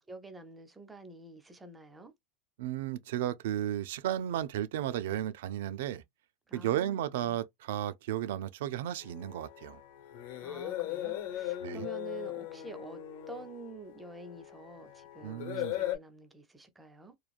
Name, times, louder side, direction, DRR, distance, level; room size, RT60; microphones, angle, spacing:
voice 1, 0.0-2.1 6.5-7.4 10.4-13.0 13.3-17.1, right 3 dB, 10° right, 0.4 m, -48 dB
voice 2, 2.6-6.0 6.5-9.8 11.6-11.9 15.2-15.8, right 11 dB, 75° right, 0.4 m, -34 dB
sound 1, 9.0-16.0, left 13 dB, 60° left, 0.9 m, -39 dB
3.0 x 2.2 x 2.4 m
supercardioid pair, 165°, 0 cm